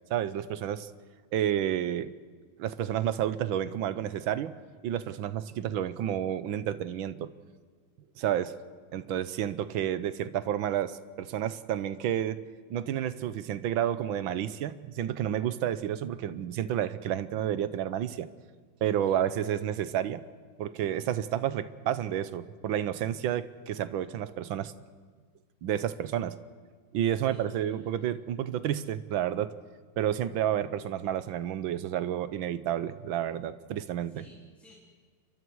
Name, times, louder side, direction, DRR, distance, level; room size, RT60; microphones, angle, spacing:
voice 1, 0.1-0.9 1.3-2.1 2.6-7.3 8.2-8.5 8.9-12.4 12.7-18.3 18.8-20.2 20.6-24.7 25.6-26.4 26.9-29.5 30.0-34.3, right 10 dB, 75° right, 14 dB, 1.5 m, -30 dB
voice 2, 27.2-27.9 34.1-34.8, left 1 dB, ahead, -4 dB, 3.2 m, -56 dB
28.5 x 23.5 x 4.7 m, 1.5 s
omnidirectional pair, 2.3 m